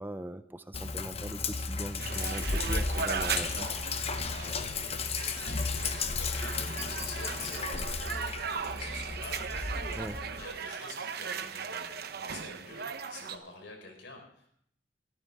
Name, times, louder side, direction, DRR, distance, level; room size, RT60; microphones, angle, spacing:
voice 1, 0.0-3.7 10.0-10.2, right 1 dB, 10° right, 11 dB, 0.5 m, -40 dB
Sink (filling or washing), 0.7-10.4, left 4 dB, 35° left, 0.9 m, -34 dB
sound 1, 2.0-13.4, right 6 dB, 55° right, 0.9 m, -38 dB
voice 2, 4.2-14.5, left 3 dB, 75° left, 3 dB, 4.3 m, -48 dB
22.0 x 13.0 x 3.6 m, 0.69 s
head